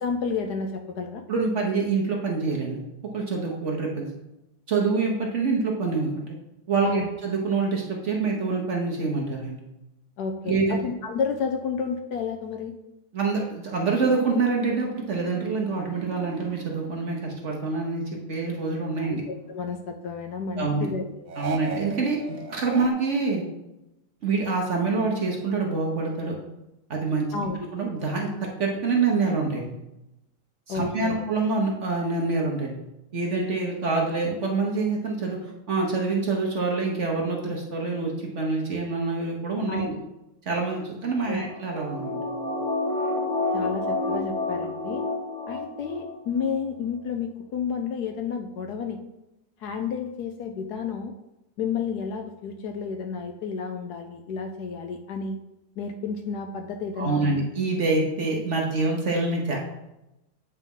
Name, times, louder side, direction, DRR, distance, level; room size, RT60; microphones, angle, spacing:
voice 1, 0.0-1.2 6.8-7.1 10.2-12.8 19.0-21.3 27.3-27.6 30.7-31.2 39.7-39.9 41.3-41.5 43.5-45.0 45.5-49.0 49.6-51.1 51.6-55.4 55.8-57.4, left 5 dB, 70° left, 6 dB, 1.0 m, -31 dB
voice 2, 1.3-2.8 3.1-4.1 4.7-6.3 6.7-9.6 10.4-10.8 13.1-19.2 20.6-20.9 21.4-23.4 24.2-26.4 26.9-27.5 27.7-29.7 30.7-32.8 33.1-40.0 40.4-42.3 57.0-59.6, right 4 dB, 50° right, -1 dB, 1.0 m, -26 dB
sound 1, 13.9-17.8 18.2-19.7 21.3-22.9, right 5 dB, 80° right, 0.6 m, -40 dB
sound 2, 41.3-46.1 46.4-46.5, left 2 dB, 45° left, 1.7 m, -29 dB
8.3 x 3.5 x 5.3 m, 0.94 s
omnidirectional pair, 2.0 m